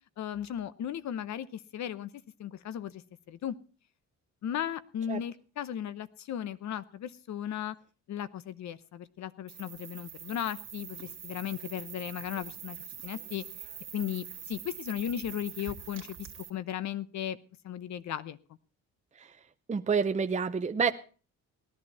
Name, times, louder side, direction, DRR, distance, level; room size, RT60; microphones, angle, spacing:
voice 1, 0.2-2.1 2.4-3.0 3.3-3.6 4.4-7.7 8.1-12.8 13.0-13.4 13.9-17.4 17.6-18.4, left 10 dB, 65° left, 16 dB, 0.9 m, -36 dB
sound 1, 9.5-16.5, right 9 dB, 55° right, 2.2 m, -44 dB
voice 2, 19.7-20.9, right 5 dB, 25° right, 7 dB, 0.7 m, -28 dB
18.5 x 11.0 x 4.2 m, 0.38 s
cardioid pair, 90°, 30 cm